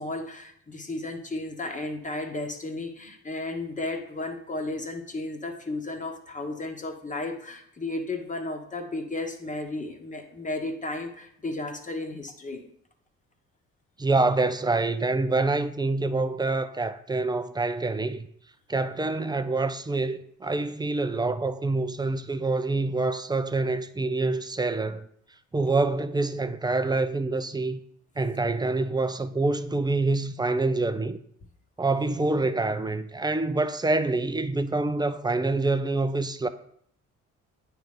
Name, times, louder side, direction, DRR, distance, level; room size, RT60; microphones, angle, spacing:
voice 1, 0.0-12.6, left 2 dB, 25° left, 1.1 m, -34 dB
voice 2, 14.0-18.3 18.7-25.1 25.5-27.8 28.2-31.2 31.8-36.5, right 3 dB, 15° right, 0.4 m, -26 dB
9.0 x 3.3 x 5.4 m
cardioid pair, 90°, 30 cm